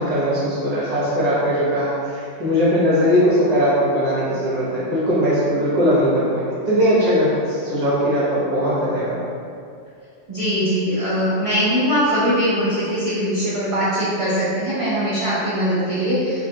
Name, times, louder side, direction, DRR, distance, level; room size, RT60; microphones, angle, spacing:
voice 1, 0.0-9.2, equal, 40° right, -9 dB, 0.7 m, -19 dB
voice 2, 10.3-16.5, equal, 65° right, -11 dB, 0.3 m, -21 dB
2.2 x 2.1 x 2.7 m, 2.4 s
omnidirectional pair, 1.2 m